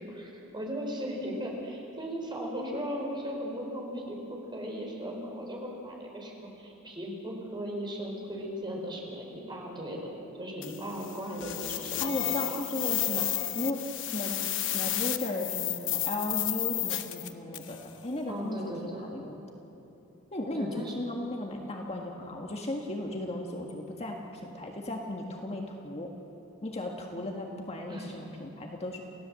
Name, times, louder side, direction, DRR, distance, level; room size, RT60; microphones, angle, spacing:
voice 1, 0.0-10.1 10.4-12.3 12.8-13.2 18.3-19.1 20.5-20.9 27.9-28.1, equal, 20° right, -1 dB, 4.5 m, -37 dB
sound 1, 10.6-17.8, left 13 dB, 60° left, 1.0 m, -32 dB
voice 2, 12.0-13.3 13.5-19.4 20.3-26.1 26.6-29.0, left 1 dB, 30° left, 1 dB, 1.7 m, -36 dB
28.5 x 16.5 x 7.7 m, 2.9 s
head